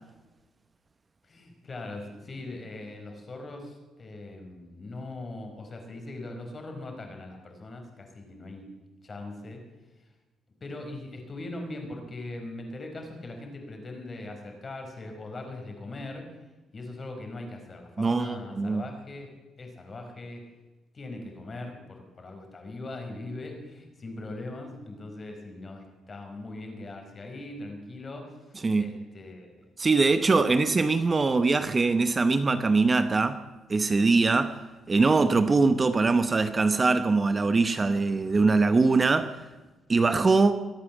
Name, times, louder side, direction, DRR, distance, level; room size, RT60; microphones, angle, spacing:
voice 1, 1.2-8.7 9.0-9.6 10.6-16.3 16.7-19.3 19.6-20.4 20.9-29.7 30.0-30.5, left 2 dB, 35° left, 4.4 m, -40 dB
voice 2, 18.0-18.9 28.6-28.9 29.8-33.4 33.7-34.6 34.9-39.4 39.9-40.5, right 3 dB, 30° right, 0.9 m, -22 dB
23.5 x 8.5 x 7.3 m
cardioid pair, 90°, 0 cm